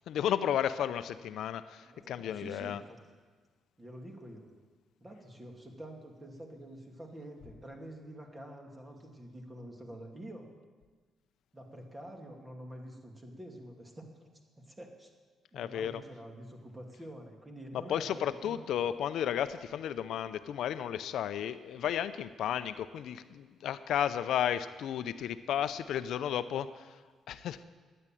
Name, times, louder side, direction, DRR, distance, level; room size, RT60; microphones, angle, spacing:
voice 1, 0.1-2.8 15.5-15.9 17.7-27.0 27.3-27.6, left 10 dB, 75° left, 12 dB, 0.6 m, -33 dB
voice 2, 1.9-3.0 3.8-4.6 5.0-10.5 11.5-14.1 14.6-15.1 15.5-18.6 22.2-22.3, right 1 dB, 20° right, 2 dB, 2.6 m, -47 dB
12.0 x 9.6 x 9.2 m, 1.5 s
cardioid pair, 90°, 0 cm